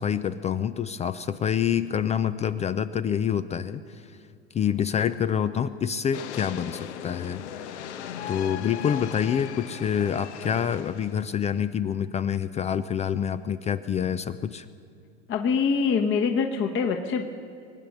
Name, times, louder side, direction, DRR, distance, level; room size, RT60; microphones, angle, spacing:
voice 1, 0.0-4.2 4.5-7.9 8.3-14.7, left 8 dB, 20° left, 13 dB, 0.4 m, -27 dB
sound 1, 6.1-11.6, left 9 dB, 75° left, 1.1 m, -38 dB
voice 2, 15.3-17.2, left 5 dB, 35° left, 3 dB, 1.2 m, -24 dB
23.0 x 9.0 x 6.7 m, 2.5 s
hypercardioid pair, 100°, 34 cm